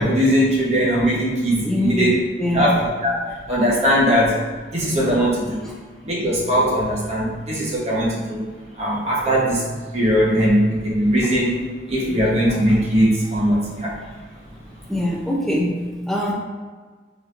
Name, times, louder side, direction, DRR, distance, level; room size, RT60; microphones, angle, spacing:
voice 1, 0.0-2.1 2.5-3.1 3.5-4.4 4.7-5.6 6.0-8.4 8.8-9.7 9.9-11.6 11.9-14.0, equal, 35° right, -6 dB, 1.1 m, -19 dB
voice 2, 1.6-2.1 2.4-2.7 5.6-5.7 10.4-10.5 12.1-12.2 14.9-16.3, left 1 dB, ahead, -5 dB, 0.6 m, -23 dB
4.0 x 3.0 x 2.5 m, 1.5 s
head